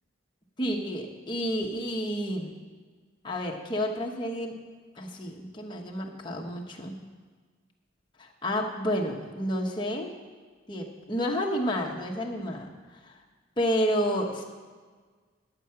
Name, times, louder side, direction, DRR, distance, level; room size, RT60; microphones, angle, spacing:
voice 1, 0.6-2.5 3.2-4.6 5.0-7.0 8.2-10.1 10.7-12.7 13.0-13.1 13.6-14.4, equal, 25° left, 0 dB, 1.0 m, -30 dB
11.0 x 7.6 x 5.7 m, 1.5 s
head